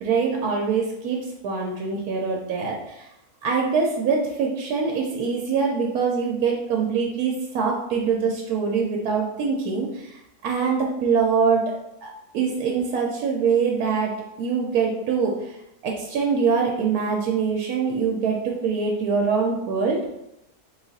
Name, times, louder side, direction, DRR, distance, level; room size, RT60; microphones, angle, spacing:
voice 1, 0.0-3.1 3.4-11.7 12.0-15.6 15.8-20.1, right 5 dB, 80° right, 0 dB, 1.1 m, -24 dB
3.6 x 2.4 x 3.9 m, 0.84 s
omnidirectional pair, 1.6 m